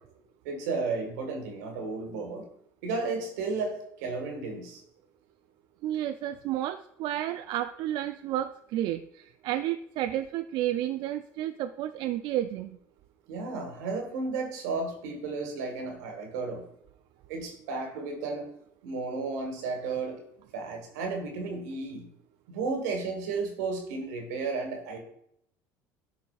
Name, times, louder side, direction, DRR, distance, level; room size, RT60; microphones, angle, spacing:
voice 1, 0.4-2.5 2.8-4.8 13.3-16.6 17.3-18.5 18.8-20.2 20.5-22.1 22.5-25.0, right 4 dB, 85° right, 3 dB, 1.6 m, -33 dB
voice 2, 5.8-12.8, right 12 dB, 60° right, 9 dB, 0.3 m, -31 dB
11.5 x 4.1 x 2.4 m, 0.72 s
hypercardioid pair, 80°, 9 cm